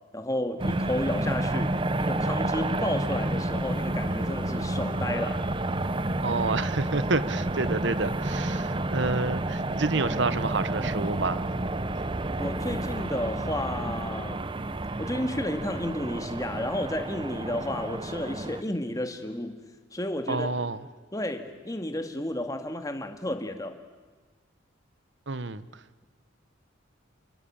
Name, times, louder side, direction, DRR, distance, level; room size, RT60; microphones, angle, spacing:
voice 1, 0.1-5.4 12.4-14.5 15.0-19.6 19.9-20.5 21.1-23.8, left 1 dB, 15° left, 1.9 m, -32 dB
sound 1, 0.6-18.6, right 1 dB, 25° right, 0.8 m, -30 dB
voice 2, 6.2-11.5 20.3-20.8 25.3-25.8, right 3 dB, 60° right, 1.1 m, -29 dB
28.5 x 21.5 x 8.7 m
head